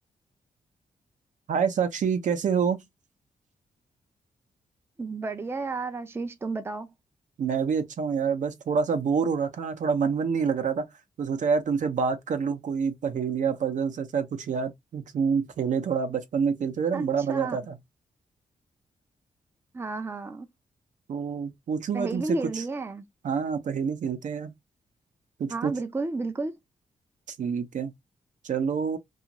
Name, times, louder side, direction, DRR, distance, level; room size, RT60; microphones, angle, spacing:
voice 1, 1.5-2.8 7.4-10.9 11.2-17.8 21.1-22.6 23.2-24.5 25.4-25.7 27.3-27.9 28.4-29.0, right 6 dB, 65° right, 0.6 m, -27 dB
voice 2, 5.0-6.9 16.9-17.6 19.7-20.5 21.9-23.0 25.5-26.5, right 3 dB, 15° right, 0.4 m, -32 dB
2.5 x 2.4 x 2.9 m
cardioid pair, 85°, 14 cm